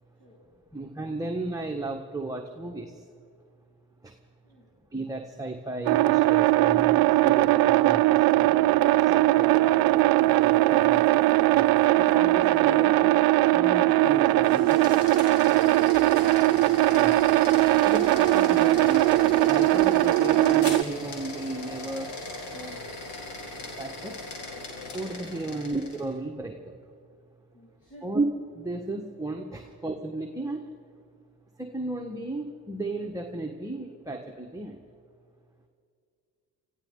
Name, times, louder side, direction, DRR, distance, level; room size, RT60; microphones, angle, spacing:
voice 1, 0.7-2.9 4.0-4.1 4.9-8.7 9.3-9.8 10.3-11.0 11.4-13.1 13.5-14.8 15.9-16.0 16.8-17.1 17.8-22.1 22.5-22.9 23.8-24.2 24.9-26.6 28.0-28.3 28.5-30.6 31.6-34.8, right 2 dB, 10° right, 2 dB, 1.4 m, -34 dB
voice 2, 4.4-4.7 25.5-25.7 27.5-28.1 29.6-29.7, right 2 dB, 45° left, -5 dB, 4.9 m, -53 dB
sound 1, 5.9-20.8, right 17 dB, 55° right, 0.5 m, -20 dB
sound 2, 14.3-26.1, left 2 dB, 70° left, 3.6 m, -38 dB
25.5 x 15.0 x 3.8 m, 2.3 s
supercardioid pair, 60°, 42 cm